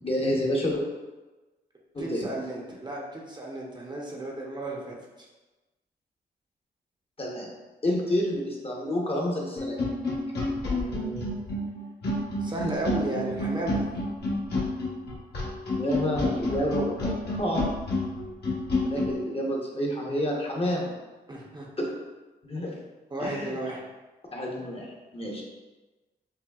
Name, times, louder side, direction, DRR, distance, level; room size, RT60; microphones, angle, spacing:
voice 1, 0.0-0.8 1.9-2.3 7.2-7.5 7.8-9.8 15.7-17.6 18.8-20.9 21.8-21.9 22.4-22.7 23.2-23.5 24.3-25.4, equal, 35° left, -2 dB, 0.9 m, -29 dB
voice 2, 2.0-5.0 10.7-11.4 12.4-13.9 21.3-21.7 23.1-23.9, right 1 dB, 25° right, -3 dB, 0.7 m, -34 dB
sound 1, 9.6-19.2, left 2 dB, 70° left, 1.2 m, -29 dB
5.6 x 2.2 x 2.3 m, 1.2 s
cardioid pair, 70°, 18 cm